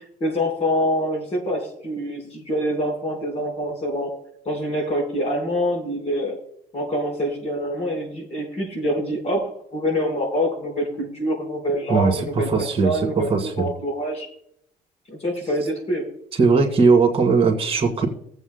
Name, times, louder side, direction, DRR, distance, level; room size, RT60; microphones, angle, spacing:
voice 1, 0.2-4.1 4.4-6.4 6.7-12.5 12.8-14.3 15.1-16.1, equal, 40° left, 0 dB, 4.4 m, -25 dB
voice 2, 11.9-13.7 16.4-18.1, right 4 dB, 35° right, 1 dB, 2.1 m, -19 dB
20.0 x 8.0 x 2.2 m, 0.69 s
cardioid pair, 110°, 17 cm